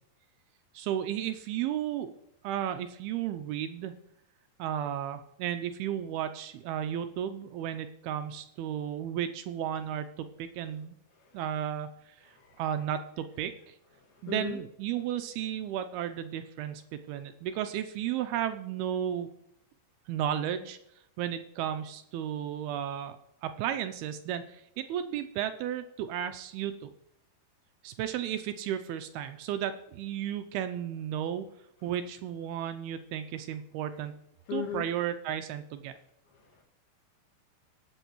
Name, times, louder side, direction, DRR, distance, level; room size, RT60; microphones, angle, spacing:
voice 1, 0.7-2.1 2.4-3.9 4.6-11.0 11.3-13.8 14.2-19.3 20.1-20.8 21.2-23.2 23.4-26.9 27.8-31.5 31.8-34.2 34.5-35.9, right 10 dB, 80° right, 9 dB, 2.4 m, -34 dB
voice 2, 12.3-12.6 14.0-14.6 34.5-34.8 36.3-36.6, left 7 dB, 65° left, 0 dB, 3.8 m, -38 dB
19.5 x 7.9 x 3.0 m, 0.78 s
omnidirectional pair, 4.8 m